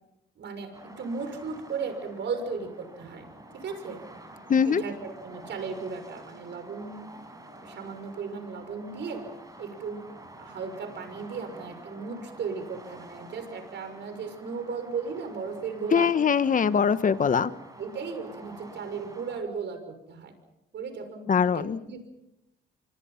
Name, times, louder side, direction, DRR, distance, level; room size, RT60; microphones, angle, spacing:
voice 1, 0.4-3.3 3.6-4.0 4.7-7.1 7.6-9.2 9.6-10.0 10.4-16.1 17.8-20.3 20.7-22.1, right 5 dB, 65° right, 8 dB, 6.2 m, -36 dB
sound 1, 0.7-19.4, right 1 dB, 20° right, 6.9 m, -48 dB
voice 2, 4.5-4.8 15.9-17.5 21.3-21.8, left 6 dB, 40° left, 13 dB, 1.2 m, -22 dB
26.0 x 25.0 x 5.8 m, 0.88 s
cardioid pair, 90°, 20 cm